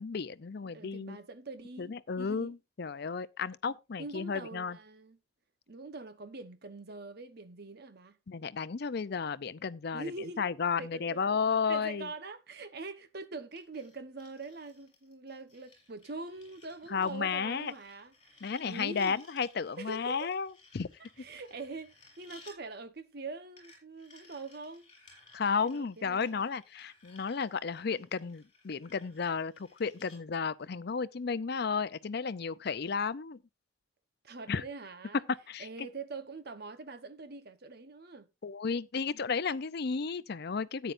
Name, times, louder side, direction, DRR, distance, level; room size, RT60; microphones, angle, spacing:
voice 1, 0.0-1.2 1.8-4.8 8.3-10.1 10.4-12.1 16.9-17.7 18.4-20.5 20.7-20.9 25.3-33.4 34.5-34.6 35.5-35.7 38.4-40.9, left 5 dB, 55° left, 0.5 m, -33 dB
voice 2, 0.6-2.5 3.6-5.2 5.7-8.2 9.9-10.5 10.8-11.4 11.7-19.2 19.8-20.3 21.2-24.9 25.6-26.5 34.2-35.3 35.6-38.3, right 3 dB, 55° right, 1.0 m, -44 dB
sound 1, 13.6-22.6 23.6-30.2, left 3 dB, 25° left, 5.8 m, -60 dB
13.5 x 9.1 x 2.6 m
head